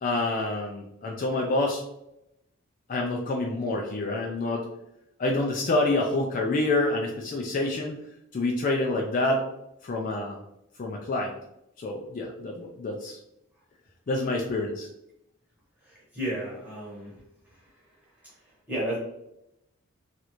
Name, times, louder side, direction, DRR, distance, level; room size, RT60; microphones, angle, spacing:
voice 1, 0.0-1.8 2.9-4.6 5.2-8.0 8.3-9.4 9.8-10.4 10.8-11.3 11.8-13.2 14.1-14.9, left 2 dB, 35° left, 0 dB, 0.3 m, -27 dB
voice 2, 15.8-17.1 17.5-17.7 18.2-19.0, right 1 dB, 5° right, -6 dB, 1.0 m, -34 dB
3.1 x 2.5 x 2.9 m, 0.84 s
head